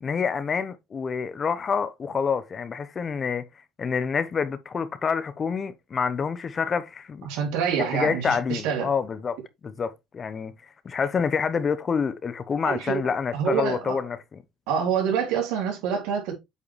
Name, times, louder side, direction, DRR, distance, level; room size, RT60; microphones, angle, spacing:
voice 1, 0.0-3.4 3.8-7.3 7.9-14.4, left 6 dB, 35° left, 1.1 m, -27 dB
voice 2, 7.2-8.9 12.6-13.0 13.3-14.0 14.7-16.3, right 7 dB, 90° right, 3.2 m, -26 dB
8.3 x 4.8 x 3.4 m
cardioid pair, 105°, 0 cm